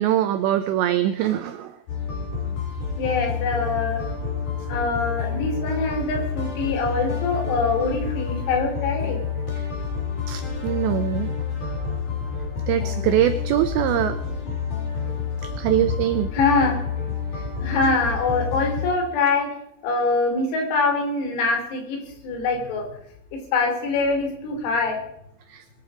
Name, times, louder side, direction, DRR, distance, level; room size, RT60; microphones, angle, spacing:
voice 1, 0.0-1.7 10.3-11.3 12.7-14.2 15.6-16.3 17.3-17.4 17.8-17.9 25.5-25.6, right 12 dB, 85° right, 10 dB, 2.5 m, -23 dB
sound 1, 1.9-18.9, left 6 dB, 40° left, 5.3 m, -29 dB
voice 2, 3.0-4.0 4.7-9.2 16.3-16.8 17.6-19.5 19.8-22.9 23.3-25.0, left 3 dB, 80° left, 3 dB, 6.3 m, -24 dB
21.0 x 12.0 x 5.0 m, 0.71 s
omnidirectional pair, 6.0 m